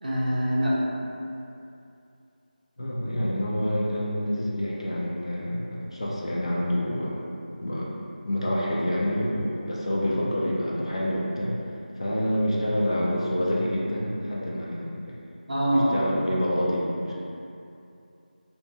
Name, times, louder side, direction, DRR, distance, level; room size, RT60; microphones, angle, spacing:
voice 1, 0.0-0.8 15.5-16.0, equal, 60° right, -6 dB, 0.5 m, -24 dB
voice 2, 2.8-7.2 7.6-7.9 8.3-11.5 12.0-15.1 15.7-17.1, equal, 35° left, -5 dB, 0.4 m, -27 dB
2.6 x 2.6 x 2.3 m, 2.6 s
figure-of-eight pair, 170°, 5 cm